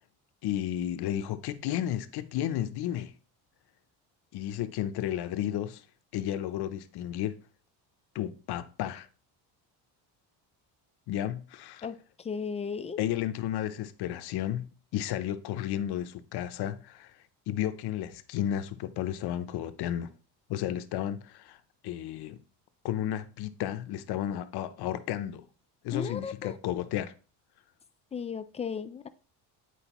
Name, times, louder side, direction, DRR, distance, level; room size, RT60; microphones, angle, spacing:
voice 1, 0.4-3.1 4.3-5.8 6.1-7.4 8.1-9.1 11.1-11.9 13.0-17.2 17.5-20.1 20.5-21.6 21.8-22.4 22.8-25.4 25.8-27.1, left 11 dB, 65° left, 0.7 m, -33 dB
voice 2, 11.8-13.0 25.9-26.6 28.1-29.1, left 6 dB, 15° left, 0.4 m, -35 dB
10.0 x 4.6 x 3.0 m
cardioid pair, 130°, 43 cm